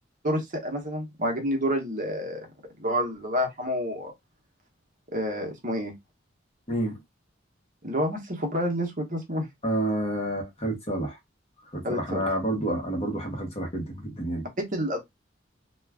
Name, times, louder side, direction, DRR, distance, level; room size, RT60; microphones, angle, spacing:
voice 1, 0.2-2.5 2.8-4.1 5.1-5.9 7.8-9.5 11.8-12.2 14.6-15.0, equal, 40° right, 0.8 m, -28 dB
voice 2, 6.7-7.0 9.6-11.2 11.7-14.5, right 1 dB, 30° left, 0.9 m, -29 dB
2.4 x 2.3 x 3.3 m
head